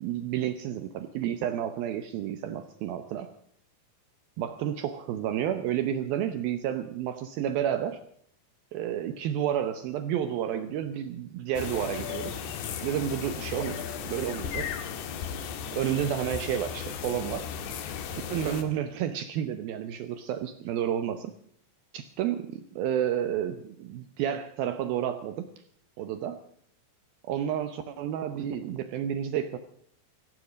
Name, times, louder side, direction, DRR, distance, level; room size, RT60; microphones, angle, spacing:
voice 1, 0.0-3.3 4.4-8.0 8.7-12.4 12.8-14.7 15.7-17.5 18.3-21.3 21.9-25.5 26.0-26.4 27.3-29.6, right 10 dB, 75° right, 10 dB, 2.2 m, -31 dB
sound 1, 11.6-18.6, left 7 dB, 70° left, 3.5 m, -35 dB
17.0 x 15.5 x 5.1 m, 0.65 s
omnidirectional pair, 5.2 m